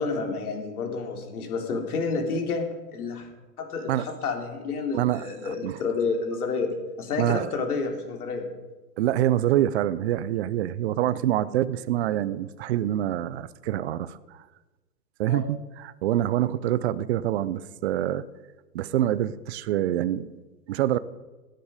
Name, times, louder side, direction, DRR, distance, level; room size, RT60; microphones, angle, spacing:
voice 1, 0.0-2.6 2.9-3.3 3.6-8.5 15.3-15.4, left 4 dB, 60° left, 3 dB, 3.5 m, -29 dB
voice 2, 4.9-5.8 7.2-7.5 9.0-14.4 15.2-18.3 18.7-20.3 20.7-21.0, right 12 dB, 40° right, 16 dB, 0.7 m, -26 dB
17.5 x 10.5 x 5.0 m, 1.2 s
hypercardioid pair, 130°, 49 cm